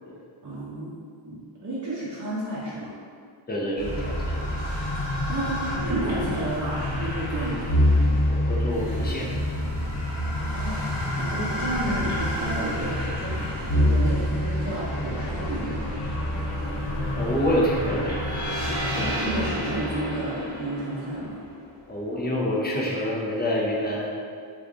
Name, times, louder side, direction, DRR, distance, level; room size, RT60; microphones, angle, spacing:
voice 1, 0.4-0.9 1.2-3.0 5.3-7.6 10.3-10.8 11.2-13.4 13.7-15.8 18.9-21.4, right 1 dB, 40° right, -9 dB, 0.7 m, -31 dB
voice 2, 3.5-4.6 8.3-9.3 17.2-18.2 18.6-18.8 21.9-24.1, equal, 20° left, -4 dB, 0.6 m, -27 dB
sound 1, 3.8-21.7, left 1 dB, 60° left, 1.3 m, -27 dB
3.0 x 2.5 x 3.5 m, 2.1 s
wide cardioid pair, 105°, 46 cm